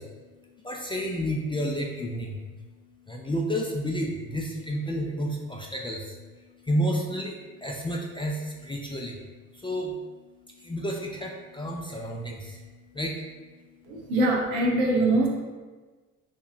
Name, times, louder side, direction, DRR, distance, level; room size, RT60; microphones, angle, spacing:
voice 1, 0.0-14.1, equal, 15° left, -1 dB, 0.3 m, -32 dB
voice 2, 13.8-15.3, right 2 dB, 80° right, -2 dB, 0.8 m, -23 dB
3.6 x 2.8 x 2.4 m, 1.3 s
hypercardioid pair, 50°, 42 cm